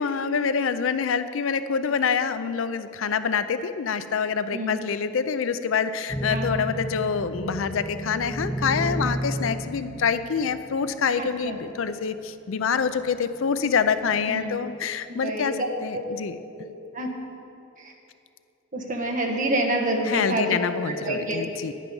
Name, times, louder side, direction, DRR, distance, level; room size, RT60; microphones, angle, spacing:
voice 1, 0.0-16.4 20.0-21.7, left 6 dB, 80° left, 12 dB, 0.5 m, -26 dB
voice 2, 4.5-4.8 6.3-6.6 11.2-11.6 14.3-14.6 15.1-15.6 15.9-16.0 16.5-16.6 16.9-17.1 17.8-17.9 18.7-21.4, right 1 dB, 40° right, 1 dB, 1.3 m, -28 dB
sound 1, 6.1-10.9 11.6-11.7 12.9-13.4 14.1-14.5, right 1 dB, 15° left, 0.5 m, -31 dB
10.0 x 9.2 x 5.4 m, 2.7 s
head